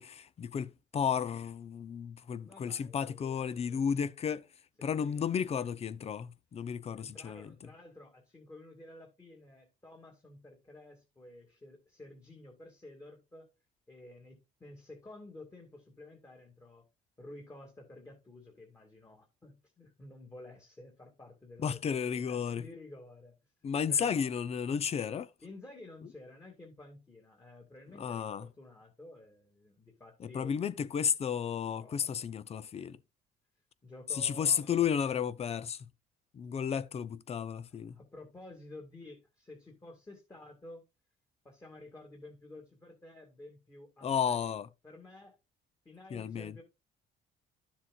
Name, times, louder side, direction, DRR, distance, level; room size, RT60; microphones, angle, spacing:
voice 1, 0.0-4.4 4.8-7.5 21.6-22.6 23.6-25.3 28.0-28.5 30.2-33.0 34.1-35.8 36.3-37.9 44.0-44.7 46.1-46.5, left 7 dB, 40° left, 0.7 m, -33 dB
voice 2, 2.4-3.8 4.8-5.5 7.0-13.5 13.9-16.9 17.2-23.5 23.9-24.3 25.4-30.5 31.8-32.2 32.8-32.9 33.8-35.2 37.7-40.8 41.4-44.5 44.8-45.4 45.8-46.6, left 2 dB, 20° left, 2.3 m, -52 dB
12.0 x 7.3 x 2.5 m
cardioid pair, 110°, 17 cm